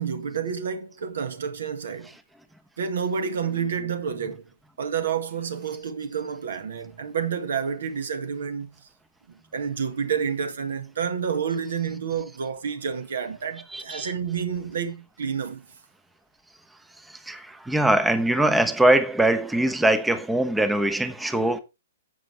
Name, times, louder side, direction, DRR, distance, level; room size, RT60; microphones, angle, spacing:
voice 1, 0.0-2.1 2.8-4.5 4.8-8.7 9.5-15.7, right 7 dB, 60° right, 1.7 m, -29 dB
voice 2, 13.7-14.1 17.0-21.6, right 1 dB, 5° right, 1.0 m, -22 dB
10.5 x 7.9 x 3.3 m
figure-of-eight pair, 115°, 0 cm